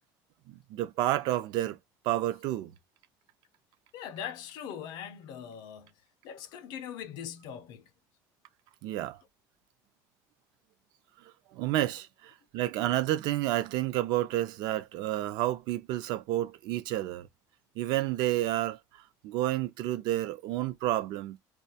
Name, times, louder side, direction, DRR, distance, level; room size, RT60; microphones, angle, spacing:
voice 1, 0.5-1.8 2.0-2.7 8.8-9.2 11.5-17.3 17.8-21.4, right 14 dB, 55° right, 0.4 m, -30 dB
voice 2, 3.9-5.9 6.2-7.8, left 9 dB, 55° left, 0.5 m, -41 dB
2.2 x 2.2 x 2.7 m
cardioid pair, 170°, 8 cm